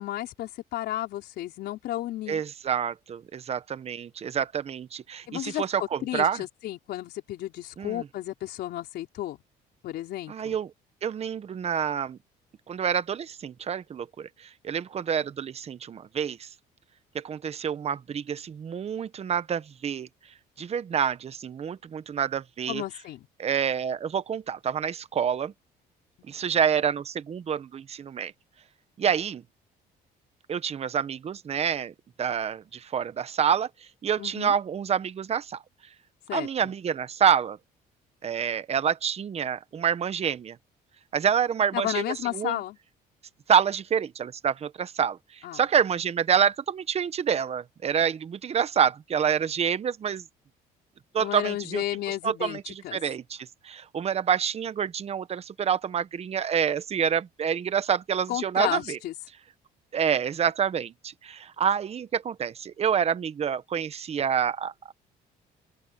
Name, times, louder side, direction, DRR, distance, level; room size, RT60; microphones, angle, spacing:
voice 1, 0.0-2.4 5.3-9.4 9.8-10.6 22.7-23.3 34.2-34.5 36.3-36.7 41.7-42.8 45.4-45.6 51.2-53.0 58.3-59.1, left 14 dB, 75° left, 4.6 m, -33 dB
voice 2, 2.3-6.4 7.8-8.0 10.3-10.7 11.0-12.2 12.7-14.3 14.6-16.5 17.1-20.1 20.6-22.8 23.4-25.5 26.3-28.3 29.0-29.4 30.5-31.9 32.2-33.7 34.0-35.6 36.3-37.6 38.2-40.6 41.1-42.0 42.3-42.6 43.5-50.2 51.1-51.8 52.2-59.0 59.9-64.9, right 8 dB, 40° right, 1.1 m, -27 dB
open air
cardioid pair, 110°, 17 cm